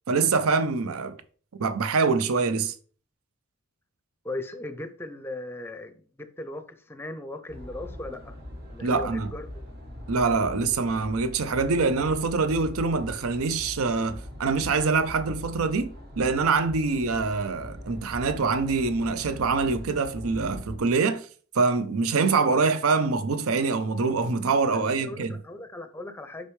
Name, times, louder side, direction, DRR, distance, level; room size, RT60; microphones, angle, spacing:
voice 1, 0.1-1.2 1.6-2.7 8.8-9.3 10.1-15.9 16.2-21.3 21.5-25.4, right 4 dB, 75° right, 0.6 m, -25 dB
voice 2, 4.2-8.3 8.7-9.5 24.7-26.5, left 2 dB, 10° left, 0.6 m, -38 dB
sound 1, 7.5-20.8, left 1 dB, 45° right, 1.3 m, -41 dB
6.5 x 5.4 x 3.2 m
head